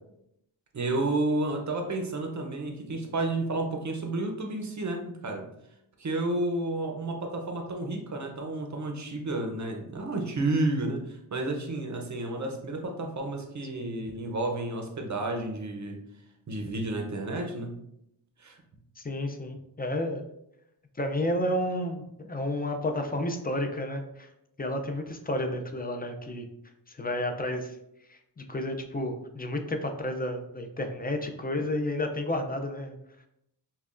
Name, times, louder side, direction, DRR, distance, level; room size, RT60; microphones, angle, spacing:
voice 1, 0.7-5.5 6.0-16.0 16.5-17.7 18.4-18.6, right 2 dB, 45° right, 3 dB, 0.6 m, -31 dB
voice 2, 19.0-20.2 21.0-24.3 24.6-26.5 26.9-27.8 28.1-33.0, left 1 dB, 25° left, 4 dB, 0.4 m, -31 dB
5.5 x 2.2 x 2.4 m, 0.79 s
wide cardioid pair, 120°, 42 cm